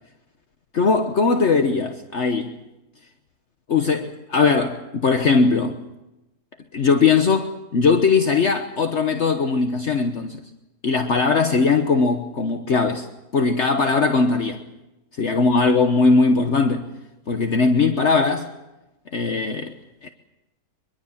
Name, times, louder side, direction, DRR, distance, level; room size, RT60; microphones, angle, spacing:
voice 1, 0.7-2.5 3.7-5.8 6.7-10.4 10.8-13.1 13.3-14.6 15.2-16.9 17.3-18.5 19.1-19.7 20.0-20.1, left 4 dB, 55° left, 1.4 m, -19 dB
24.0 x 22.0 x 7.3 m
omnidirectional pair, 1.5 m